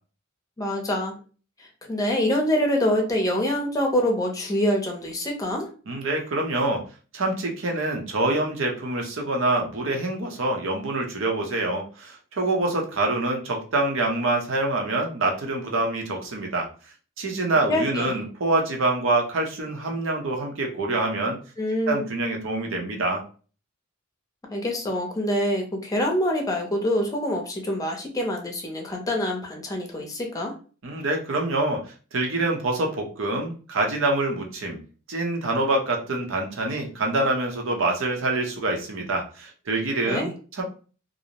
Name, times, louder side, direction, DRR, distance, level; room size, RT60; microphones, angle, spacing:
voice 1, 0.6-1.2 1.6-5.7 17.7-18.2 21.6-22.1 24.5-30.5 40.1-40.3, left 1 dB, 15° left, 0 dB, 0.6 m, -25 dB
voice 2, 5.9-6.8 7.1-16.7 17.2-21.4 21.9-23.2 30.8-31.8 32.1-34.8 35.1-40.6, right 2 dB, 70° right, 1 dB, 0.7 m, -26 dB
2.5 x 2.0 x 2.8 m, 0.38 s
head